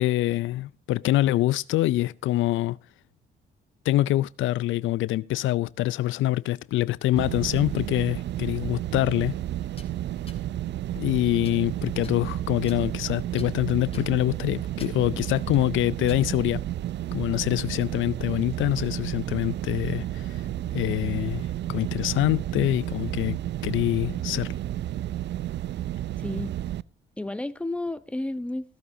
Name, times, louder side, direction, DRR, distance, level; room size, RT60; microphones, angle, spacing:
voice 1, 0.0-2.8 3.9-9.3 11.0-16.6 17.1-20.4 20.7-24.5, left 15 dB, 80° left, 0.5 m, -25 dB
sound 1, 7.2-26.8, right 13 dB, 60° right, 0.5 m, -32 dB
sound 2, 9.6-9.9 10.3-10.4 11.0-11.6 12.0-12.2 12.7-13.1 13.4-13.5 13.9-14.1 14.6-15.1 15.5-15.6 16.1-16.6 16.9-17.1 17.6-17.7 18.5-18.9, left 4 dB, 30° left, 2.9 m, -48 dB
voice 2, 26.2-26.5 27.2-28.8, left 2 dB, 5° left, 1.0 m, -32 dB
15.5 x 13.5 x 2.7 m
cardioid pair, 90°, 20 cm